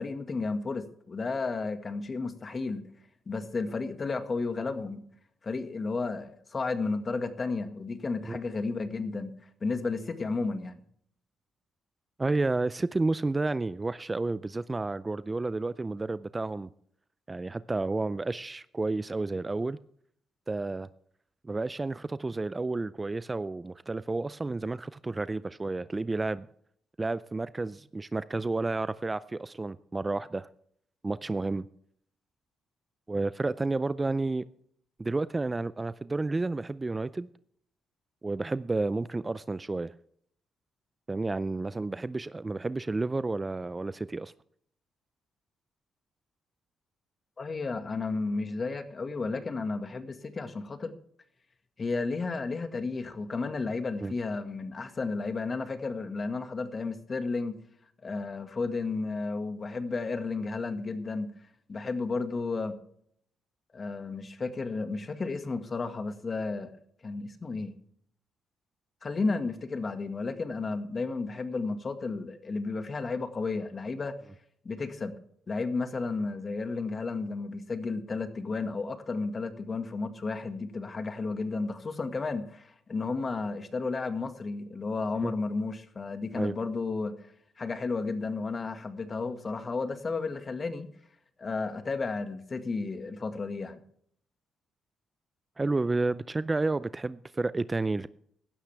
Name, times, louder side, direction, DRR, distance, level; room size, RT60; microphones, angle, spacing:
voice 1, 0.0-2.9 3.3-5.0 5.4-9.3 9.6-10.8 47.4-50.9 51.8-57.6 58.0-61.3 61.7-62.8 63.7-66.7 67.0-67.7 69.0-74.2 74.7-75.2 75.5-87.3 87.6-90.9 91.4-93.8, left 3 dB, 35° left, 1.8 m, -33 dB
voice 2, 12.2-16.7 17.3-19.8 20.5-20.9 21.4-26.5 27.0-30.5 31.0-31.6 33.1-34.4 35.0-37.3 38.2-39.9 41.1-44.3 54.0-54.1 85.2-85.3 86.3-86.5 95.6-98.1, right 3 dB, 20° right, 0.4 m, -31 dB
16.5 x 12.5 x 3.4 m
cardioid pair, 90°, 0 cm